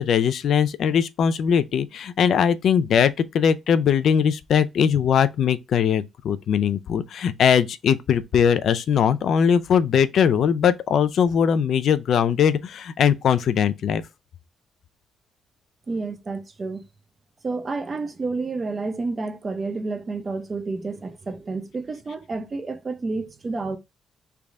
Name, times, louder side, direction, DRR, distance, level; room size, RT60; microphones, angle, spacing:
voice 1, 0.0-14.0, left 7 dB, 65° left, 0.4 m, -20 dB
voice 2, 15.9-16.8 17.4-23.8, right 3 dB, 35° right, 0.6 m, -30 dB
3.3 x 2.3 x 3.9 m
cardioid pair, 90°, 0 cm